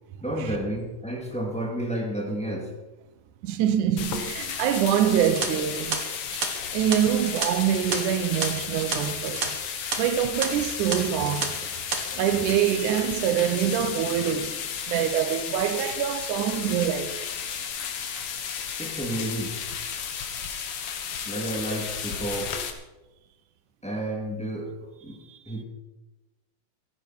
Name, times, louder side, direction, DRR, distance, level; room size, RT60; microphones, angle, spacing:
voice 1, 0.2-2.7 18.8-19.6 21.2-22.5 23.8-24.7 25.0-25.2 25.5-25.6, right 1 dB, ahead, 2.6 m, -31 dB
voice 2, 3.4-6.0 6.7-9.6 10.0-11.6 12.1-14.6 14.9-17.2 25.3-25.4, right 10 dB, 85° right, 2.4 m, -25 dB
sound 1, 4.0-22.7, left 7 dB, 55° left, 2.0 m, -33 dB
sound 2, 5.2-9.5 9.7-10.0 10.4-10.5 10.9-11.5 11.7-12.0, right 5 dB, 50° right, 2.5 m, -31 dB
17.0 x 15.0 x 4.5 m
omnidirectional pair, 3.5 m